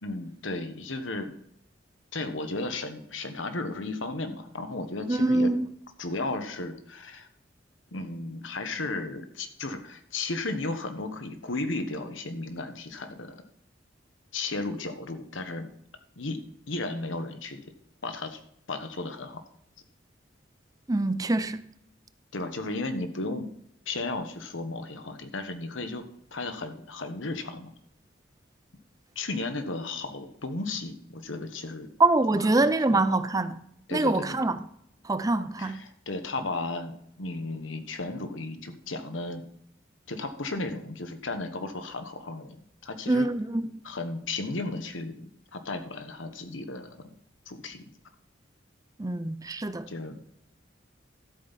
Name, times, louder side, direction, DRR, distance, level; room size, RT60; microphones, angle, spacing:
voice 1, 0.0-1.3 2.1-5.5 6.0-7.3 7.9-13.4 14.3-15.7 16.2-17.6 18.0-18.4 18.7-19.4 22.3-23.5 23.8-26.0 26.3-27.7 29.1-31.9 32.4-33.1 33.9-34.4 35.6-39.5 40.1-43.3 43.8-47.1 47.5-47.9 49.9-50.2, left 2 dB, 85° left, 1.3 m, -34 dB
voice 2, 5.1-5.7 20.9-21.6 32.0-34.6 35.0-35.8 43.1-43.6 49.0-49.9, right 2 dB, 20° right, 0.5 m, -25 dB
13.0 x 8.0 x 4.2 m
head